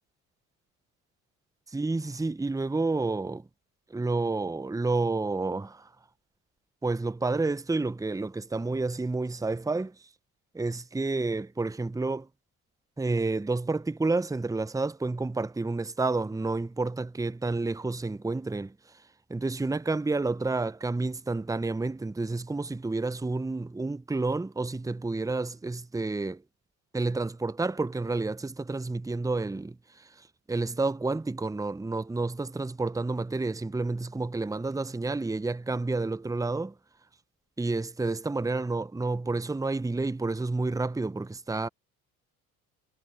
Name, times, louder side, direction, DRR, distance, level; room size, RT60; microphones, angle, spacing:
voice 1, 1.7-3.5 3.9-5.9 6.8-9.9 10.5-12.3 13.0-18.7 19.3-26.4 26.9-36.7 37.6-41.7, right 3 dB, 5° right, 1.1 m, -30 dB
figure-of-eight pair, 60°, 44 cm